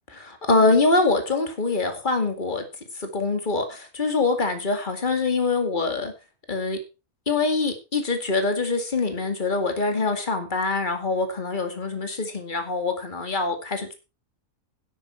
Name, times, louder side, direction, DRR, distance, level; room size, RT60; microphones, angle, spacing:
voice 1, 0.1-2.6 2.9-6.1 6.5-6.8 7.3-13.9, left 3 dB, 35° left, 6 dB, 2.5 m, -24 dB
12.5 x 10.5 x 4.7 m, 0.31 s
omnidirectional pair, 1.5 m